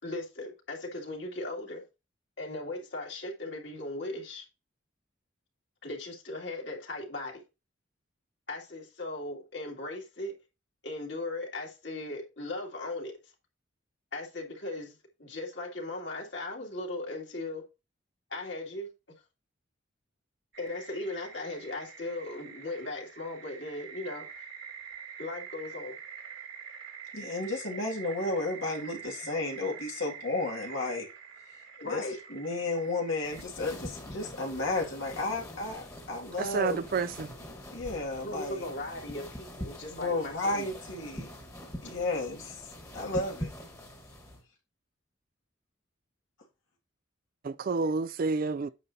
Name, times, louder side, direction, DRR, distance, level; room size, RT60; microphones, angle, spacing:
voice 1, 0.0-1.8 2.4-4.5 5.8-7.4 8.5-10.3 10.8-13.1 14.1-14.9 15.2-17.6 18.3-18.9 20.6-24.3 25.2-26.0 31.8-32.2 38.2-40.7, left 2 dB, 60° left, 2.5 m, -38 dB
sound 1, 20.5-33.4, right 6 dB, 70° right, 1.6 m, -46 dB
voice 2, 27.1-31.1 31.8-36.8 37.7-38.6 39.9-41.3 41.8-42.7 42.9-43.5, left 2 dB, 85° left, 2.2 m, -33 dB
sound 2, 33.2-44.4, equal, 15° left, 1.4 m, -44 dB
voice 3, 36.4-37.3 47.4-48.7, right 4 dB, 45° right, 0.3 m, -29 dB
9.0 x 6.6 x 2.7 m
head